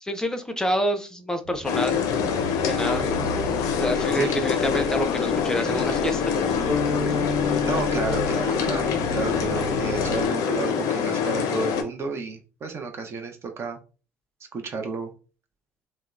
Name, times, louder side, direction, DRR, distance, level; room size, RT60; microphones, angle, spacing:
voice 1, 0.0-2.0 2.7-3.1 3.8-6.6, equal, 10° left, 7 dB, 0.5 m, -27 dB
sound 1, 1.4-10.3, right 2 dB, 85° right, 0.5 m, -37 dB
sound 2, 1.6-11.8, left 7 dB, 60° left, 0.5 m, -25 dB
sound 3, 6.7-10.6, left 3 dB, 20° right, 1.2 m, -32 dB
voice 2, 7.6-13.8 14.5-15.1, right 4 dB, 40° right, 4 dB, 0.6 m, -32 dB
2.8 x 2.0 x 2.4 m, 0.34 s
hypercardioid pair, 60°, 7 cm